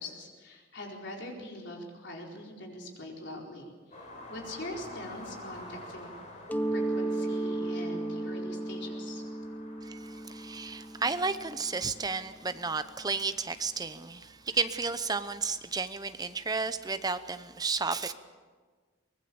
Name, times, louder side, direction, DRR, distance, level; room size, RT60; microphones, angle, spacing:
voice 1, 0.0-3.7 4.3-6.1 6.7-9.2, left 1 dB, 60° left, 0 dB, 4.5 m, -42 dB
sound 1, 3.9-15.3 16.8-16.9, left 1 dB, 40° left, 5.3 m, -50 dB
Mallet percussion, 6.5-12.0, right 2 dB, 10° left, 0.6 m, -34 dB
voice 2, 9.8-18.1, right 4 dB, 20° right, 11 dB, 0.9 m, -32 dB
24.0 x 19.5 x 7.1 m, 1.5 s
head